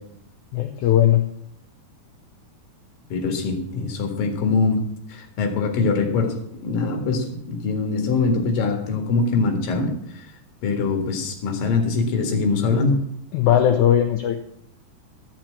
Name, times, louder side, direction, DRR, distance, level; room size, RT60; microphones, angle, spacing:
voice 1, 0.5-1.2 13.3-14.4, left 11 dB, 85° left, 6 dB, 1.7 m, -18 dB
voice 2, 3.1-4.8 5.1-10.2 10.6-13.0, left 4 dB, 65° left, 4 dB, 3.4 m, -23 dB
14.0 x 6.0 x 7.4 m, 0.72 s
omnidirectional pair, 4.5 m